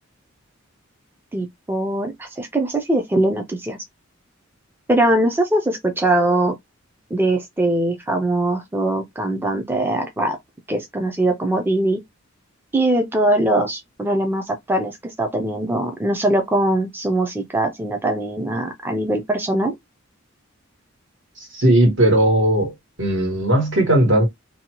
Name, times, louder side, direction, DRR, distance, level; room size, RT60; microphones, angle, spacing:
voice 1, 1.3-3.8 4.9-6.5 7.1-10.4 10.7-12.0 12.7-19.7, right 1 dB, 10° right, 0.4 m, -21 dB
voice 2, 21.5-22.7 23.0-24.3, right 1 dB, 60° right, 1.4 m, -17 dB
2.7 x 2.2 x 2.9 m
head